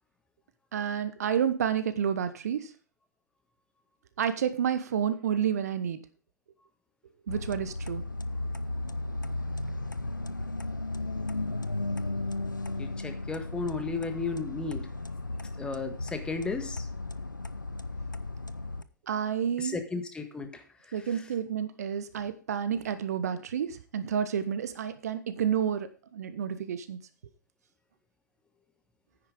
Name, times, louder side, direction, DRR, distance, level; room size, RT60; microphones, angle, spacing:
voice 1, 0.7-2.7 4.2-6.0 7.3-8.0 19.1-19.8 20.9-25.9 26.1-27.0, right 8 dB, 55° right, 12 dB, 1.1 m, -30 dB
sound 1, 7.3-18.8, left 2 dB, 85° left, 0.7 m, -35 dB
voice 2, 12.8-14.9 15.6-16.9 19.6-21.2, left 4 dB, 10° left, 7 dB, 1.5 m, -35 dB
10.0 x 9.4 x 5.1 m, 0.36 s
figure-of-eight pair, 110°, 10 cm